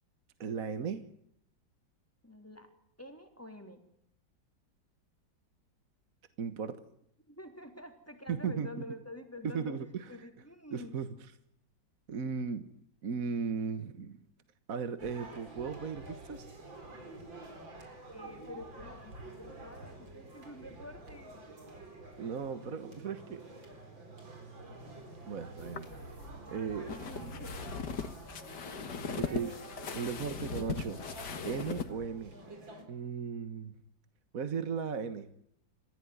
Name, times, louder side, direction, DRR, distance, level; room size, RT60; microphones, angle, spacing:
voice 1, 0.4-1.0 6.4-6.8 8.3-8.7 9.4-10.0 10.7-11.1 12.1-12.7 13.0-14.2 14.7-16.5 22.2-23.4 25.3-26.1 26.5-27.0 29.2-29.5 29.9-31.0 31.5-32.3 32.9-33.7 34.3-35.3, right 6 dB, 50° right, 11 dB, 1.7 m, -36 dB
voice 2, 2.2-2.7 3.0-3.8 7.3-9.7 10.1-11.0 18.1-21.4 26.3-27.6 29.0-29.7, left 1 dB, 5° left, 5 dB, 3.4 m, -48 dB
sound 1, 15.0-32.8, right 2 dB, 90° right, 5.3 m, -48 dB
sound 2, 25.6-31.9, left 6 dB, 65° left, 2.2 m, -40 dB
29.0 x 15.5 x 9.6 m, 0.74 s
omnidirectional pair, 2.0 m